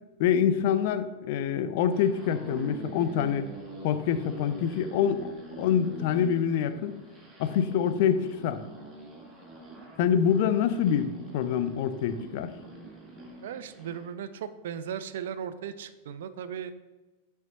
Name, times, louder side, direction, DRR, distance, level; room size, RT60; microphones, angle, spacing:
voice 1, 0.2-3.5 3.8-6.9 7.4-8.6 10.0-12.5, left 8 dB, 50° left, 11 dB, 0.5 m, -26 dB
sound 1, 1.8-14.1, right 3 dB, 20° right, 1.9 m, -45 dB
voice 2, 13.4-16.7, right 8 dB, 60° right, 12 dB, 0.4 m, -37 dB
10.5 x 5.7 x 2.8 m, 1.2 s
figure-of-eight pair, 90°, 0 cm